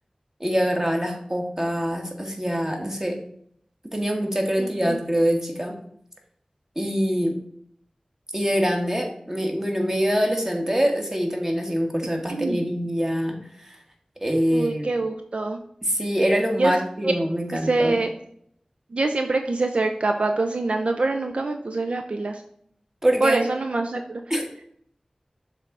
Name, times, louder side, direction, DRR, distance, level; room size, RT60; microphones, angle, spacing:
voice 1, 0.4-3.2 3.9-5.7 6.7-7.4 8.3-13.8 14.2-14.9 15.8-18.0 23.0-23.4 24.3-24.5, equal, 20° right, 2 dB, 1.5 m, -24 dB
voice 2, 4.6-5.0 12.3-12.6 14.5-15.6 16.6-16.7 17.0-17.1 17.5-18.1 18.9-22.4 23.2-24.2, right 2 dB, 65° right, 6 dB, 0.5 m, -24 dB
6.7 x 3.8 x 4.6 m, 0.66 s
wide cardioid pair, 50°, 2 cm